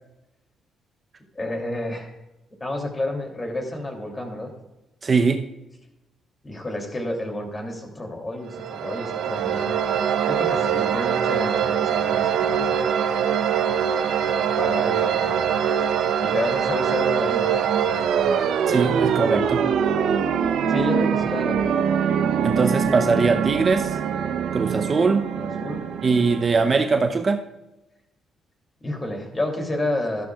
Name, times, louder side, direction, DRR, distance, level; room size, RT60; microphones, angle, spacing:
voice 1, 1.3-2.1 2.6-4.5 6.4-9.8 10.3-13.0 14.6-15.4 16.2-18.1 20.7-21.7 25.3-25.8 28.8-30.3, left 1 dB, 25° left, 3 dB, 3.0 m, -30 dB
voice 2, 5.0-5.4 18.7-19.6 22.4-24.0 24.5-25.3 26.0-27.4, right 4 dB, 35° right, 6 dB, 0.8 m, -21 dB
sound 1, 8.5-27.1, right 8 dB, 75° right, 0.8 m, -23 dB
13.0 x 12.5 x 2.4 m, 0.98 s
cardioid pair, 90°, 0 cm